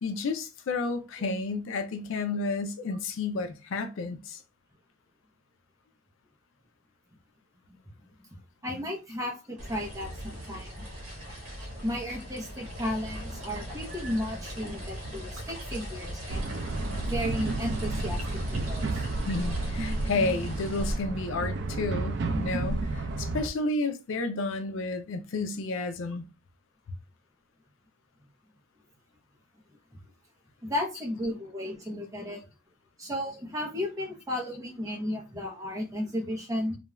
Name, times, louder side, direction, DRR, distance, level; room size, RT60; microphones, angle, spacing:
voice 1, 0.0-4.4 19.3-26.3, left 3 dB, 65° left, 0.4 m, -31 dB
voice 2, 8.6-10.8 11.8-16.5 17.0-19.0 29.9-30.0 30.6-32.4 33.0-36.8, left 1 dB, 15° right, 0.7 m, -34 dB
sound 1, 9.6-21.0, equal, 75° right, 0.9 m, -39 dB
sound 2, 16.3-23.5, right 2 dB, 55° right, 0.3 m, -31 dB
2.4 x 2.2 x 3.0 m
head